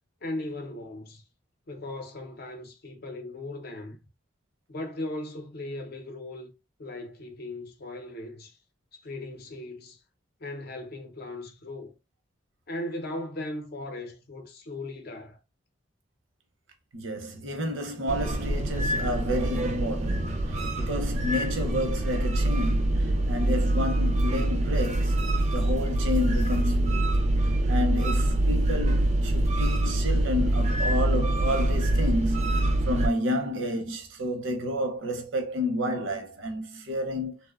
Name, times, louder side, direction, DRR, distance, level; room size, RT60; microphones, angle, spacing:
voice 1, 0.2-1.2 1.7-4.0 4.7-6.5 6.8-8.6 9.0-10.0 10.4-11.9 12.7-15.4, left 1 dB, 55° left, 0.5 m, -38 dB
voice 2, 16.9-37.4, left 1 dB, 85° right, 0.7 m, -31 dB
sound 1, 18.1-33.1, right 1 dB, 35° right, 0.3 m, -25 dB
2.6 x 2.0 x 2.3 m
head